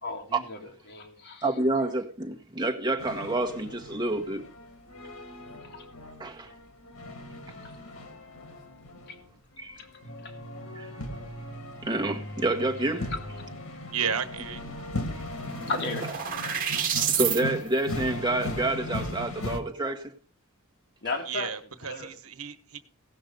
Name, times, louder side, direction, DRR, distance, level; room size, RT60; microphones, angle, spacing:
voice 1, 0.0-1.5 5.7-5.8 7.6-7.7 9.1-9.2 9.8-9.9 10.2-10.3 15.7-16.3 16.5-16.7 21.0-21.5 21.8-22.1, left 3 dB, 55° left, 2.1 m, -35 dB
voice 2, 1.4-4.4 6.2-6.5 9.6-9.8 10.7-10.9 11.8-13.1 15.1-15.2 17.1-20.1, right 2 dB, 20° right, 1.5 m, -28 dB
sound 1, 3.0-19.6, left 1 dB, 80° left, 2.0 m, -38 dB
voice 3, 13.9-14.7 21.3-22.8, right 7 dB, 90° right, 1.2 m, -33 dB
sound 2, 14.6-14.7 14.9-17.4, right 8 dB, 40° right, 1.7 m, -29 dB
17.0 x 6.2 x 5.3 m
head